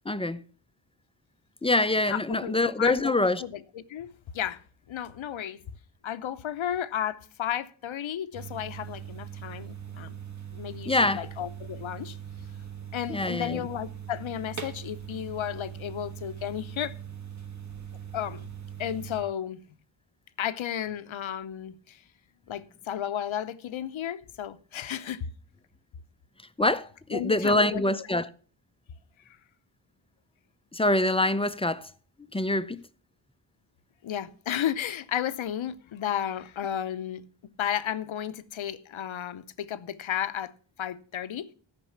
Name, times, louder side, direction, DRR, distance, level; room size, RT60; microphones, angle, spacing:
voice 1, 0.1-0.4 1.6-3.4 10.9-11.3 13.1-13.7 26.6-28.3 30.7-31.9 32.3-32.8, left 2 dB, 10° left, 0.5 m, -25 dB
voice 2, 2.1-3.1 3.4-3.6 3.9-4.6 4.9-5.6 6.0-10.2 10.5-12.2 12.9-16.9 18.1-18.5 18.8-19.6 20.4-22.0 22.5-25.3 27.1-27.8 34.0-37.2 37.6-40.5 40.8-41.5, left 10 dB, 75° left, 0.8 m, -33 dB
sound 1, 8.3-19.2, right 9 dB, 35° right, 1.3 m, -41 dB
13.5 x 5.3 x 5.8 m
cardioid pair, 65°, 48 cm